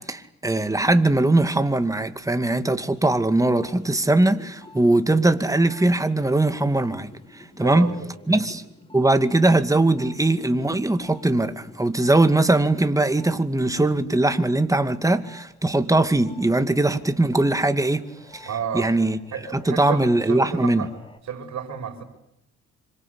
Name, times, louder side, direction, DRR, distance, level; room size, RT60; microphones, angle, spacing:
voice 1, 0.0-7.9 8.3-8.6 8.9-18.1 18.3-18.5 18.7-19.2 19.5-20.9, right 2 dB, 10° right, 2.4 m, -21 dB
sound 1, 3.2-14.5 14.8-21.2, left 2 dB, 15° left, 5.4 m, -48 dB
voice 2, 7.6-8.5 18.4-18.9 19.3-20.9 21.2-22.0, right 7 dB, 65° right, 6.3 m, -32 dB
27.0 x 25.0 x 8.4 m
cardioid pair, 90°, 30 cm